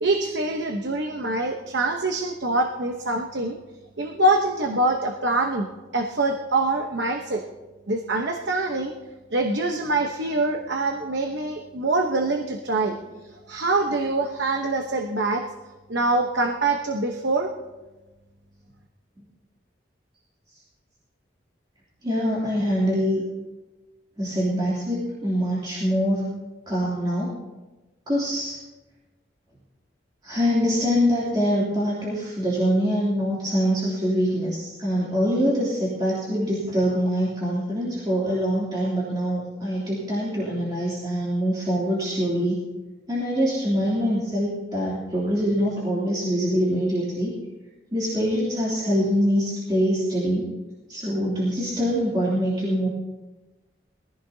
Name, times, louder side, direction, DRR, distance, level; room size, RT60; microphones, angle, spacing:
voice 1, 0.0-3.6 4.0-5.7 5.9-7.4 7.9-8.9 9.3-13.0 13.5-15.4 15.9-17.5, right 2 dB, 70° right, 3 dB, 1.0 m, -24 dB
voice 2, 22.0-23.2 24.2-26.4 26.7-27.4 28.1-28.6 30.2-42.6 43.1-47.3 47.9-50.5 50.9-52.9, equal, 25° right, -8 dB, 3.0 m, -24 dB
22.0 x 15.0 x 2.8 m, 1.1 s
head